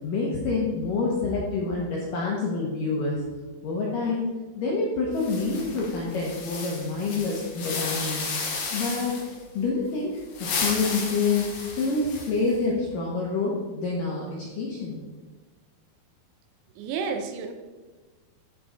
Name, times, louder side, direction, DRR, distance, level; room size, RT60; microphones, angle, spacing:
voice 1, 0.0-3.2 3.6-4.3 4.6-8.2 8.7-9.2 9.5-15.0, left 3 dB, 75° left, -4 dB, 2.0 m, -27 dB
sound 1, 5.2-9.4 10.2-12.5, left 4 dB, 55° left, 2.8 m, -33 dB
voice 2, 16.8-17.5, right 5 dB, 80° right, 7 dB, 3.0 m, -30 dB
14.5 x 5.9 x 3.9 m, 1.3 s
omnidirectional pair, 5.7 m